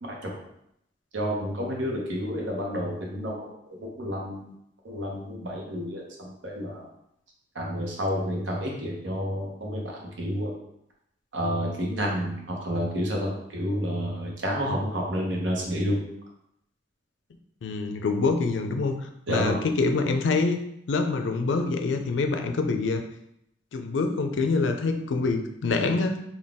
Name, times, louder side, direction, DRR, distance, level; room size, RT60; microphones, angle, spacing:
voice 1, 0.0-0.3 1.1-3.5 3.8-4.5 4.8-6.9 7.5-10.5 11.3-16.0 19.3-19.6, equal, 85° right, -1 dB, 0.9 m, -30 dB
voice 2, 17.6-20.6 20.9-23.0 23.7-26.2, left 3 dB, 85° left, 6 dB, 0.4 m, -25 dB
3.9 x 2.3 x 3.5 m, 0.76 s
head